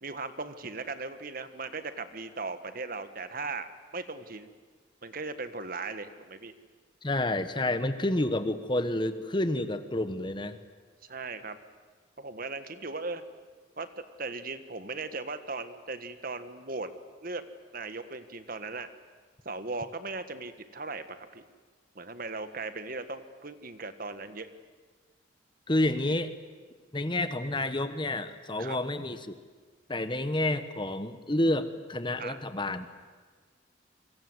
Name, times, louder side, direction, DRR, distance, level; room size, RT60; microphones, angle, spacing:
voice 1, 0.0-4.5 5.0-6.5 11.0-11.6 12.2-13.2 13.8-16.9 17.2-17.4 17.7-18.9 19.4-21.5 21.9-24.5 28.6-28.8 32.2-32.4, right 3 dB, 50° right, 10 dB, 1.5 m, -38 dB
voice 2, 7.0-10.6 25.7-26.3 26.9-29.4 29.9-32.9, left 1 dB, 25° left, 11 dB, 1.2 m, -29 dB
29.0 x 24.5 x 8.0 m, 1.5 s
head